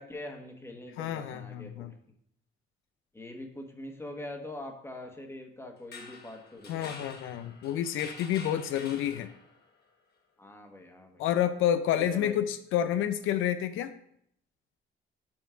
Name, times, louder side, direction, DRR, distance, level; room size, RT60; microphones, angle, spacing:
voice 1, 0.0-1.9 3.1-6.9 10.4-11.2 12.1-12.4, left 1 dB, 10° left, 3 dB, 1.2 m, -43 dB
voice 2, 1.0-1.9 6.7-9.3 11.2-13.9, left 10 dB, 90° left, 10 dB, 0.4 m, -29 dB
sound 1, 5.8-9.6, left 4 dB, 55° left, 1.2 m, -47 dB
5.8 x 4.4 x 4.9 m, 0.69 s
cardioid pair, 90°, 20 cm